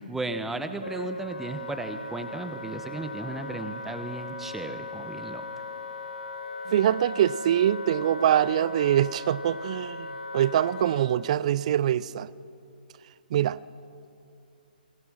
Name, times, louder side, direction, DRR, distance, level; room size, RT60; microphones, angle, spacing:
voice 1, 0.0-5.4, right 2 dB, 5° right, 8 dB, 1.2 m, -35 dB
Wind instrument woodwind instrument, 0.8-11.1, left 2 dB, 75° left, 2.2 m, -38 dB
voice 2, 6.7-10.1 10.3-12.3 13.3-13.6, right 11 dB, 45° right, 20 dB, 0.6 m, -24 dB
28.0 x 22.0 x 6.3 m, 2.7 s
figure-of-eight pair, 135°, 5 cm